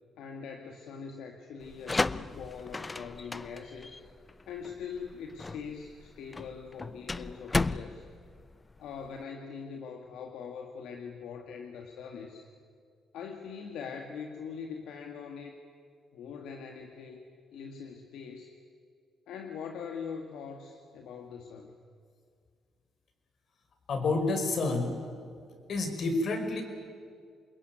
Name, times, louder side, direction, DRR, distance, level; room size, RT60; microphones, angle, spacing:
voice 1, 0.2-4.0 4.5-8.1 8.8-12.5 13.1-15.6 16.1-17.3 17.5-18.5 19.3-21.8, left 6 dB, 80° left, 3 dB, 2.1 m, -42 dB
sound 1, 1.6-9.2, left 3 dB, 20° left, 0.6 m, -35 dB
voice 2, 23.9-25.0 25.7-26.6, left 3 dB, 60° left, 6 dB, 5.4 m, -29 dB
27.5 x 21.5 x 9.5 m, 2.1 s
cardioid pair, 90°, 0 cm